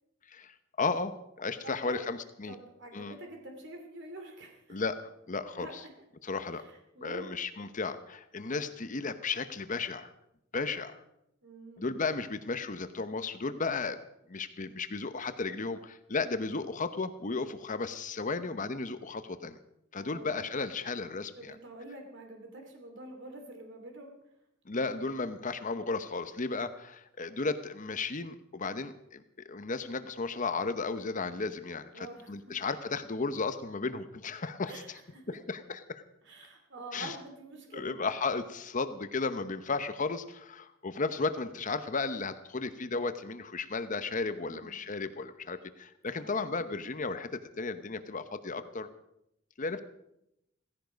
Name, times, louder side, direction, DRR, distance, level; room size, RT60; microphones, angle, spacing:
voice 1, 0.3-2.5 2.9-3.1 4.7-5.0 5.3-5.7 6.2-6.6 7.0-10.1 10.5-11.0 11.8-14.0 14.3-19.6 19.9-21.6 24.7-29.2 29.5-34.7 35.3-36.0 36.9-37.1 37.7-48.9 49.6-49.8, left 4 dB, 40° left, 11 dB, 0.9 m, -34 dB
voice 2, 1.6-2.0 2.5-4.8 5.5-5.7 6.5-7.3 11.4-12.0 20.0-20.6 21.3-24.1 31.9-32.6 34.7-35.4 36.2-37.9 44.4-44.8 46.2-46.4, right 2 dB, 65° right, 3 dB, 2.8 m, -47 dB
16.5 x 15.5 x 5.2 m, 0.82 s
head